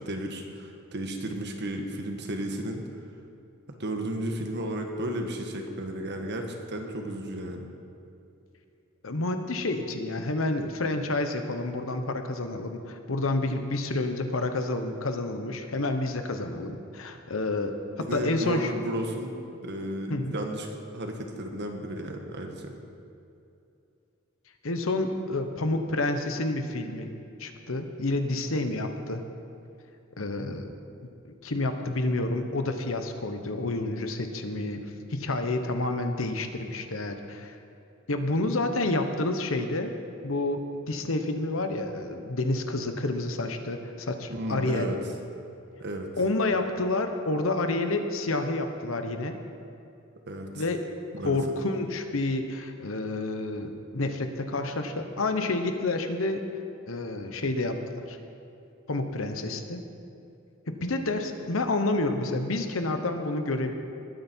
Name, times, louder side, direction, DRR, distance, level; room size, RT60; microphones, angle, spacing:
voice 1, 0.0-2.8 3.8-7.7 18.0-19.4 19.6-22.7 44.3-45.0 45.8-46.1 50.3-50.6 51.1-51.4, right 1 dB, 55° right, 3 dB, 1.5 m, -33 dB
voice 2, 9.0-18.7 20.1-20.3 24.6-27.1 27.4-29.2 30.2-30.7 31.4-34.8 35.1-37.6 38.1-39.9 40.2-44.9 46.2-49.4 50.5-50.9 51.2-56.4 56.9-58.2 58.9-59.8 60.7-63.7, left 2 dB, 80° left, 6 dB, 1.1 m, -29 dB
20.5 x 9.2 x 4.6 m, 2.6 s
head